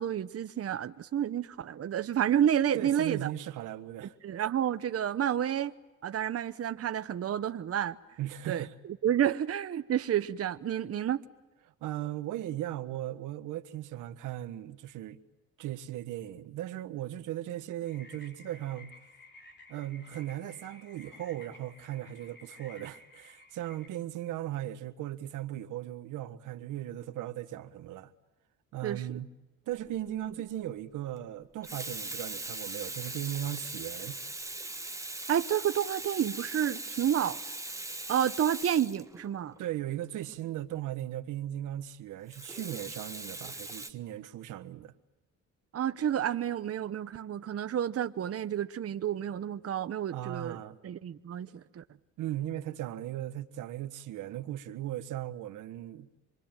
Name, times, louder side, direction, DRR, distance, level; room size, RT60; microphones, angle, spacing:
voice 1, 0.0-3.3 4.2-5.7 6.0-8.0 8.5-8.7 9.0-11.2 28.8-29.0 35.3-37.4 38.1-39.5 45.7-50.6 50.8-51.8, right 10 dB, 50° right, 1.0 m, -30 dB
voice 2, 2.7-4.1 8.2-8.7 11.8-15.2 15.6-18.9 19.7-28.1 28.7-29.3 29.7-34.2 39.6-44.9 50.1-50.8 52.2-56.1, right 13 dB, 85° right, 1.4 m, -37 dB
sound 1, 17.9-23.9, left 2 dB, 35° left, 3.7 m, -54 dB
Water tap faucet / Sink (filling or washing), 29.9-30.1 31.4-39.6 42.3-43.9, right 2 dB, 10° right, 1.7 m, -40 dB
27.0 x 23.5 x 9.1 m
cardioid pair, 90°, 30 cm